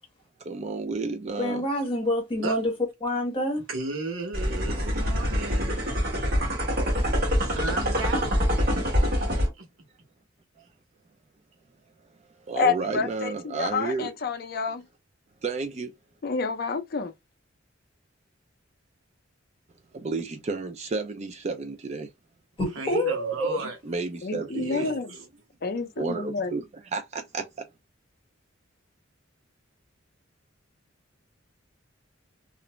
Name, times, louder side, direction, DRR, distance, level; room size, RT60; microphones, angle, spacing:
voice 1, 0.4-1.6 12.4-14.1 15.4-15.9 19.9-22.1 23.8-24.9 26.0-26.6 26.9-27.5, right 4 dB, 35° right, 0.4 m, -31 dB
voice 2, 1.4-2.6 3.0-3.6 22.6-23.6, equal, 25° left, 1.1 m, -27 dB
voice 3, 3.7-5.9 7.4-8.4 8.7-9.7 22.7-23.8 24.5-25.3, right 3 dB, 85° right, 0.9 m, -35 dB
sound 1, 4.3-9.5, equal, 50° right, 1.1 m, -25 dB
voice 4, 12.6-14.8 16.2-17.1 24.2-25.1 25.6-26.6, left 5 dB, 50° left, 0.4 m, -29 dB
2.4 x 2.0 x 3.0 m
head